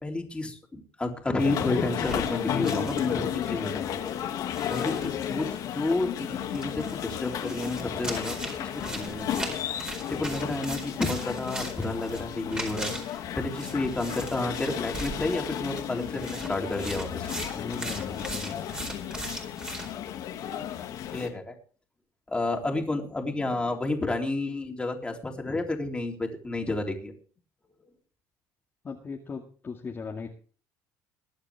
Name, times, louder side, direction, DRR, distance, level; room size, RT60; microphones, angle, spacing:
voice 1, 0.0-4.0 4.7-9.5 10.2-17.3 21.1-21.5 22.3-27.1, left 2 dB, 15° left, 2 dB, 3.6 m, -31 dB
sound 1, 1.4-21.3, left 10 dB, 60° left, 2.2 m, -33 dB
sound 2, 2.0-3.6 3.8-3.9 4.5-5.4 6.5-19.9, right 1 dB, 10° right, 4.5 m, -39 dB
voice 2, 17.5-18.9 28.8-30.3, left 5 dB, 30° left, -1 dB, 2.2 m, -38 dB
22.0 x 8.9 x 3.6 m, 0.41 s
cardioid pair, 105°, 7 cm